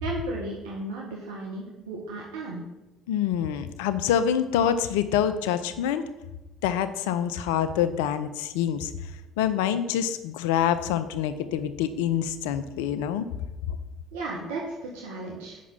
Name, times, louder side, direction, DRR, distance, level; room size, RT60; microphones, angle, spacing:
voice 1, 0.0-2.6 14.1-15.6, right 2 dB, 80° right, -2 dB, 1.5 m, -35 dB
voice 2, 3.1-6.0 6.6-8.9 9.4-13.3, left 9 dB, 80° left, 12 dB, 0.6 m, -26 dB
8.5 x 6.1 x 5.5 m, 0.99 s
hypercardioid pair, 65°, 0 cm